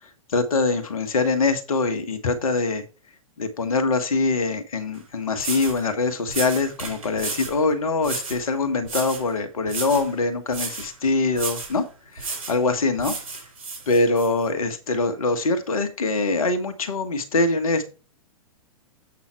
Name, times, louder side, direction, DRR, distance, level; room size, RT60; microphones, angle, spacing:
voice 1, 0.3-2.8 3.4-11.8 12.1-13.1 13.9-17.8, left 3 dB, 75° left, 9 dB, 1.6 m, -23 dB
sound 1, 4.9-5.0 5.4-5.8 6.3-7.6 8.0-8.4 8.8-9.3 9.7-10.1 10.5-10.9 11.3-11.8 12.2-12.6 13.0-14.3, right 4 dB, 70° right, 3.8 m, -32 dB
8.4 x 5.8 x 4.5 m, 0.34 s
figure-of-eight pair, 110°, 18 cm